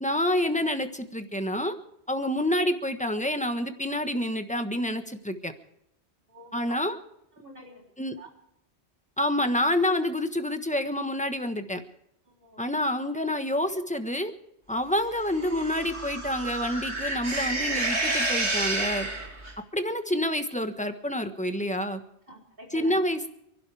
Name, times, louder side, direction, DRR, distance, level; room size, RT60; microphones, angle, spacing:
voice 1, 0.0-1.7 2.1-5.5 6.5-7.0 8.0-8.1 9.2-11.8 12.6-14.3 14.7-19.1 19.7-22.0 22.7-23.2, left 1 dB, 5° left, 7 dB, 1.2 m, -28 dB
voice 2, 6.3-6.8 7.4-8.3 12.3-12.6 22.3-23.0, equal, 55° right, -2 dB, 3.8 m, -47 dB
sound 1, 15.2-19.5, right 2 dB, 85° right, 3.0 m, -30 dB
28.5 x 12.0 x 3.5 m, 0.79 s
omnidirectional pair, 1.1 m